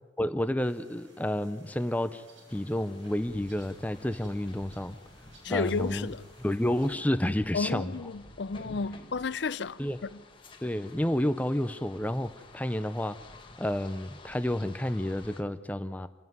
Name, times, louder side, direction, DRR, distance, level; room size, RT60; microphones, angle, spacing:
voice 1, 0.2-2.2 2.5-5.0 5.5-6.1 6.4-7.9 9.8-10.0 10.6-13.2 13.6-16.1, left 1 dB, 10° left, 0.6 m, -30 dB
sound 1, 0.6-6.9, right 1 dB, 85° right, 6.1 m, -57 dB
sound 2, 2.5-15.4, left 2 dB, 25° left, 1.6 m, -51 dB
voice 2, 5.4-6.2 7.5-10.2, left 4 dB, 65° left, 0.5 m, -32 dB
28.0 x 11.0 x 9.4 m
head